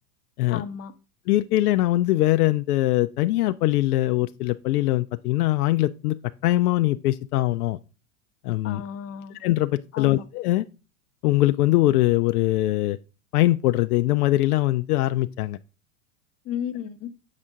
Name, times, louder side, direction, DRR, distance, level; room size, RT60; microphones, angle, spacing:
voice 1, 0.5-0.9 8.6-9.4 9.9-10.3 16.4-17.1, left 8 dB, 30° left, 0.8 m, -33 dB
voice 2, 1.3-6.2 6.4-7.8 8.4-8.8 9.4-10.6 11.2-13.0 13.3-15.6, left 16 dB, 70° left, 0.5 m, -22 dB
7.5 x 4.4 x 3.6 m
hypercardioid pair, 105°, 47 cm